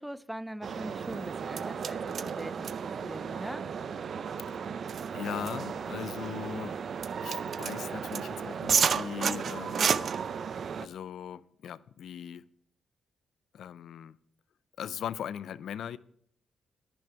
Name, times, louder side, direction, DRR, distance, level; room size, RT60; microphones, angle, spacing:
voice 1, 0.0-3.7, equal, 5° right, 0.5 m, -42 dB
sound 1, 0.6-10.9, right 7 dB, 60° right, 0.5 m, -32 dB
voice 2, 5.1-6.8 7.2-10.0 10.8-12.4 13.5-14.2 14.8-16.0, left 9 dB, 75° left, 0.5 m, -39 dB
11.0 x 10.5 x 4.6 m
supercardioid pair, 60°, 0 cm